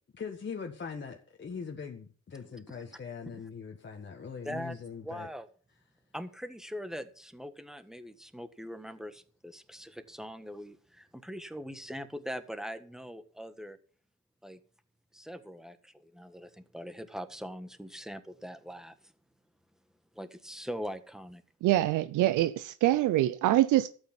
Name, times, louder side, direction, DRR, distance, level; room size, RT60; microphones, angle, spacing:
voice 1, 0.1-5.3, left 6 dB, 35° left, 1.7 m, -41 dB
voice 2, 2.5-2.8 4.4-4.7 5.0-5.5 6.1-13.8 14.4-14.6 15.1-19.0 20.1-21.4, equal, ahead, 1.5 m, -42 dB
voice 3, 21.6-23.9, right 15 dB, 85° right, 0.6 m, -25 dB
12.5 x 8.9 x 5.9 m
cardioid pair, 90°, 30 cm